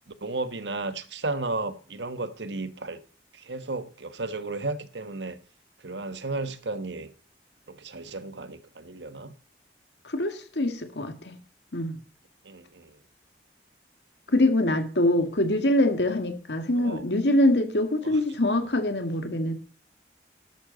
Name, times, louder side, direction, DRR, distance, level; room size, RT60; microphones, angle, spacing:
voice 1, 0.1-3.0 3.3-5.4 5.8-7.1 7.7-9.3 12.4-13.0 16.7-17.1 18.0-18.2, right 3 dB, 85° right, 1.3 m, -34 dB
voice 2, 10.0-11.4 11.7-12.0 14.3-19.5, left 1 dB, 75° left, 1.9 m, -24 dB
12.5 x 12.0 x 4.0 m
head